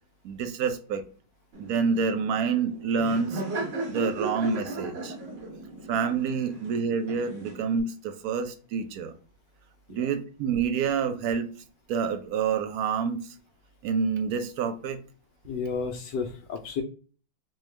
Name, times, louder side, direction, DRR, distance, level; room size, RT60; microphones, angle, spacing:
voice 1, 0.2-1.0 1.6-3.4 3.9-5.2 5.9-9.1 9.9-11.5 11.9-13.2 13.8-15.0, right 6 dB, 70° right, 0.9 m, -27 dB
Laughter, 1.5-7.8, right 2 dB, 85° right, 2.0 m, -36 dB
voice 2, 15.4-16.8, left 5 dB, 75° left, 1.2 m, -32 dB
4.3 x 2.3 x 3.1 m
omnidirectional pair, 2.1 m